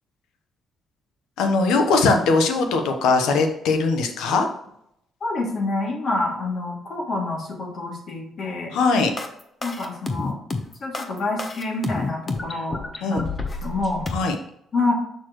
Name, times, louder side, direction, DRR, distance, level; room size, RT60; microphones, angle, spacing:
voice 1, 1.4-4.5 8.7-9.1 13.0-13.2 14.1-14.3, left 3 dB, 90° left, 5 dB, 1.1 m, -20 dB
voice 2, 5.2-8.7 9.6-10.4 10.8-12.8 13.1-13.3 13.6-14.0 14.7-14.9, left 2 dB, 55° left, -1 dB, 2.7 m, -27 dB
sound 1, 9.2-14.2, left 3 dB, 30° left, 1.1 m, -29 dB
6.8 x 6.2 x 3.1 m, 0.75 s
cardioid pair, 90°, 0 cm